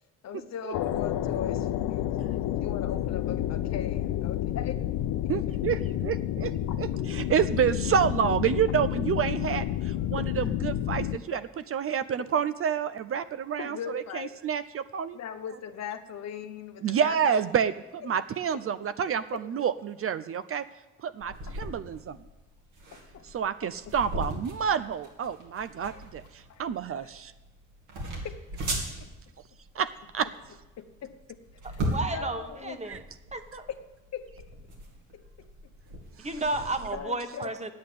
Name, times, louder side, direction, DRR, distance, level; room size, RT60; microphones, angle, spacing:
voice 1, 0.2-2.2 2.6-4.8 5.2-5.6 6.7-6.8 10.1-10.3 11.3-11.4 13.6-14.4 15.1-17.4 18.0-18.1 19.3-19.4 21.5-21.6 22.9-23.3 23.6-23.7 25.9-26.0 26.5-26.6 27.0-27.1 28.2-28.4 28.7-28.8 30.8-31.4 31.6-31.8 32.1-32.8 33.7-33.8 34.1-34.5 35.1-35.5 36.9-37.5, left 8 dB, 60° left, 8 dB, 1.0 m, -39 dB
sound 1, 0.7-11.2, left 12 dB, 85° left, 0.6 m, -30 dB
voice 2, 5.3-6.5 6.8-11.4 11.7-15.2 16.8-20.6 21.0-22.2 23.2-27.3 29.7-29.9 30.1-30.3 32.9-33.0 36.2-36.3, right 8 dB, 50° right, 13 dB, 0.5 m, -28 dB
sound 2, 21.2-36.9, right 1 dB, 85° right, 2.7 m, -38 dB
voice 3, 31.8-33.0 33.3-33.7 36.2-37.7, right 2 dB, 20° right, 8 dB, 1.2 m, -32 dB
9.4 x 8.4 x 8.5 m, 1.0 s
cardioid pair, 90°, 30 cm